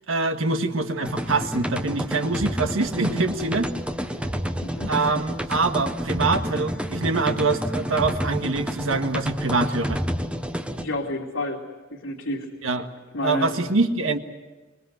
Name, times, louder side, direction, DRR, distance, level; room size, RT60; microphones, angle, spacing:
voice 1, 0.0-3.7 4.9-10.0 12.6-12.9 13.2-14.2, right 3 dB, 80° right, 7 dB, 1.7 m, -24 dB
sound 1, 1.0-10.8, equal, 5° right, 1.1 m, -29 dB
voice 2, 10.8-11.6 11.9-12.5 13.1-13.5, left 2 dB, 85° left, -2 dB, 2.5 m, -29 dB
26.0 x 21.5 x 8.0 m, 1.2 s
head